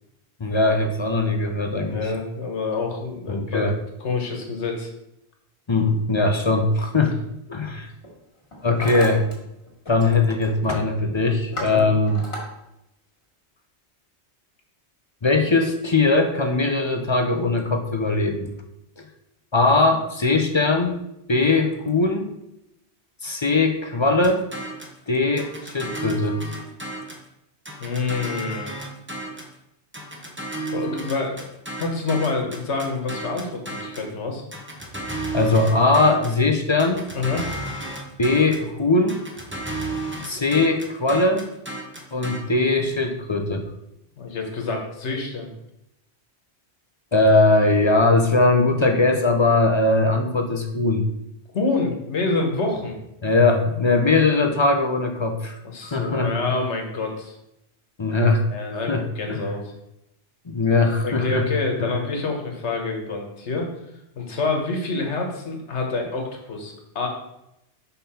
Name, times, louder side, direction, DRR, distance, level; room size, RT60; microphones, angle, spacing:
voice 1, 0.4-2.1 3.3-3.7 5.7-7.2 7.5-7.9 8.6-9.3 9.9-12.3 15.2-18.5 19.5-21.0 21.3-22.4 23.2-24.4 25.1-26.4 35.3-37.1 38.2-39.3 40.2-41.5 42.1-43.7 47.1-51.1 53.2-56.3 58.0-58.4 58.9-59.4 60.5-61.5 61.8-61.9, left 3 dB, 35° left, 4 dB, 0.5 m, -20 dB
voice 2, 1.8-3.7 4.0-4.9 6.9-7.1 11.6-11.8 27.8-28.7 30.7-31.4 31.8-34.4 37.1-37.5 44.2-45.5 51.5-52.9 55.6-57.4 58.5-59.6 61.0-63.7 64.1-67.1, left 3 dB, 85° left, 2 dB, 1.5 m, -27 dB
Hammer, 7.8-8.1 8.4-9.3 9.6-10.1 10.4-10.7 11.1-12.4, left 1 dB, 65° left, 2.2 m, -35 dB
sound 1, 24.2-25.0 25.4-27.3 27.6-29.5 29.9-34.1 34.5-36.4 36.8-38.7 39.1-42.4, right 2 dB, 10° right, 0.8 m, -33 dB
5.7 x 5.3 x 4.3 m, 0.85 s
omnidirectional pair, 1.1 m